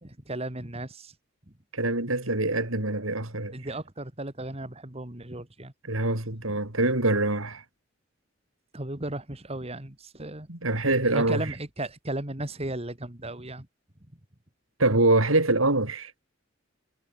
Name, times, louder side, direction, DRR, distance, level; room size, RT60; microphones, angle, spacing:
voice 1, 0.0-1.1 3.5-5.7 8.7-10.5 11.1-13.7, right 1 dB, 30° right, 2.6 m, -35 dB
voice 2, 1.7-3.5 5.9-7.6 10.5-11.5 14.8-16.1, right 2 dB, 85° right, 4.8 m, -24 dB
head